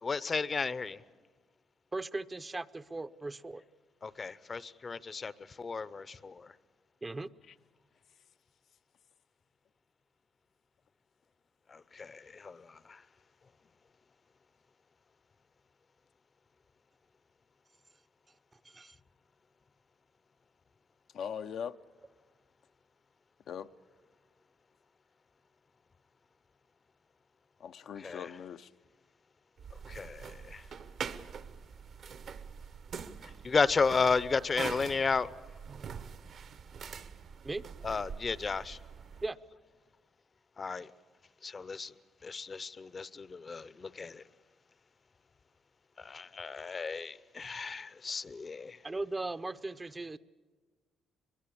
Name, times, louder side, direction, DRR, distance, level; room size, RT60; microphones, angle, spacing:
voice 1, 0.0-1.0 4.0-6.5 11.7-13.0 28.0-28.3 29.9-30.7 33.2-35.3 37.8-38.8 40.6-40.9 41.4-41.9 42.2-44.2 46.0-48.8, left 4 dB, 35° left, 0.7 m, -33 dB
voice 2, 1.9-3.6 7.0-7.3 18.6-19.0 37.4-37.6 39.2-39.4 48.8-50.2, right 2 dB, 20° right, 0.6 m, -38 dB
voice 3, 21.1-21.8 23.5-23.7 27.6-28.7, left 8 dB, 70° left, 0.6 m, -40 dB
sound 1, 29.6-39.3, right 6 dB, 65° right, 1.1 m, -44 dB
23.0 x 22.0 x 8.5 m
cardioid pair, 90°, 0 cm